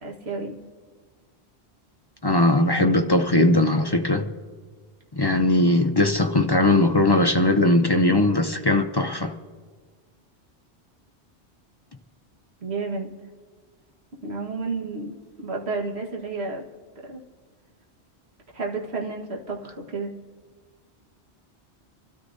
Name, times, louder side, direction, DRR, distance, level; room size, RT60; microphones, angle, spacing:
voice 1, 0.0-0.5 12.6-13.2 14.2-16.6 17.0-17.2 18.5-20.1, right 3 dB, 70° right, 1.7 m, -31 dB
voice 2, 2.2-4.3 5.1-9.3, left 2 dB, 35° left, 0.4 m, -19 dB
26.5 x 13.0 x 2.6 m
omnidirectional pair, 1.1 m